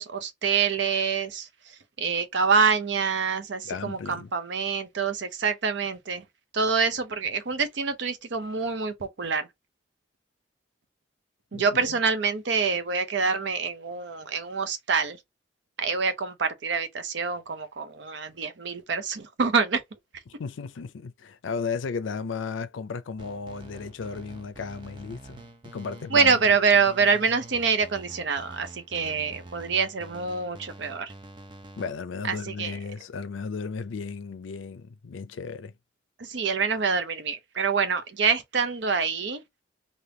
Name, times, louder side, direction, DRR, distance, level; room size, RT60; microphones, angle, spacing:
voice 1, 0.0-1.5 2.0-6.2 6.5-9.5 11.5-15.2 15.8-19.8 26.1-31.1 32.2-32.8 36.2-39.4, right 5 dB, 70° right, 0.6 m, -26 dB
voice 2, 3.6-4.3 11.5-12.0 20.3-25.4 25.6-26.5 31.8-35.7, left 5 dB, 90° left, 0.4 m, -35 dB
sound 1, 23.2-31.9, right 2 dB, 25° right, 0.6 m, -46 dB
3.4 x 2.6 x 2.6 m
head